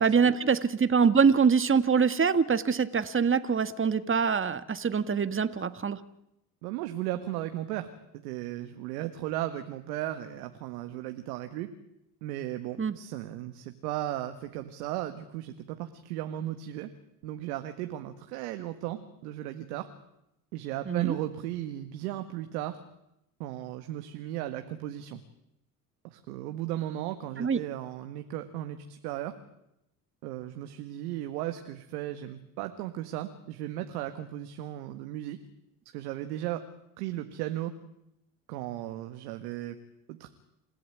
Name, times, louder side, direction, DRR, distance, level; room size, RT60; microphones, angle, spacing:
voice 1, 0.0-6.0 12.8-12.9 20.9-21.1 27.4-27.6, right 6 dB, 25° right, 12 dB, 1.7 m, -24 dB
voice 2, 6.6-7.9 8.2-11.7 12.2-16.9 17.2-19.9 20.5-22.8 23.4-25.2 26.0-29.3 30.2-35.4 35.9-36.6 37.0-37.7 38.5-39.8 40.1-40.3, right 13 dB, 85° right, 7 dB, 1.8 m, -36 dB
28.5 x 15.5 x 9.3 m, 0.83 s
hypercardioid pair, 65°, 46 cm